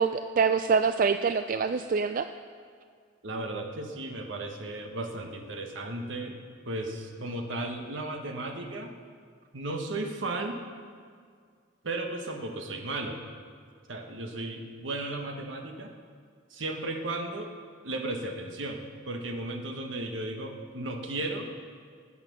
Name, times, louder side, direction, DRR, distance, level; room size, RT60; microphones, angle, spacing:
voice 1, 0.0-2.3, right 5 dB, 45° right, 9 dB, 0.4 m, -25 dB
voice 2, 3.2-8.9 9.5-10.6 11.8-13.2 13.9-15.9 16.5-17.5 17.8-21.5, right 2 dB, 90° right, 4 dB, 1.3 m, -35 dB
18.5 x 8.7 x 6.1 m, 2.1 s
head